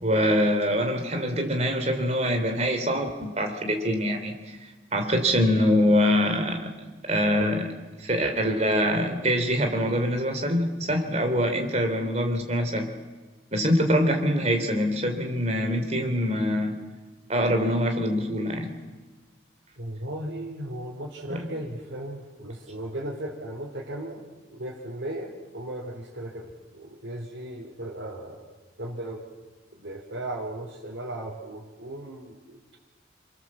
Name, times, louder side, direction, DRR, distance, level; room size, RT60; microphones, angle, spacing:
voice 1, 0.0-4.4 4.9-6.7 7.1-7.7 8.0-12.9 13.5-16.8 17.3-18.7, equal, 35° right, 4 dB, 3.3 m, -24 dB
voice 2, 19.8-24.2 24.5-28.5 28.8-29.2 29.7-32.6, right 1 dB, 80° right, -4 dB, 3.7 m, -36 dB
29.0 x 22.0 x 7.4 m, 1.3 s
head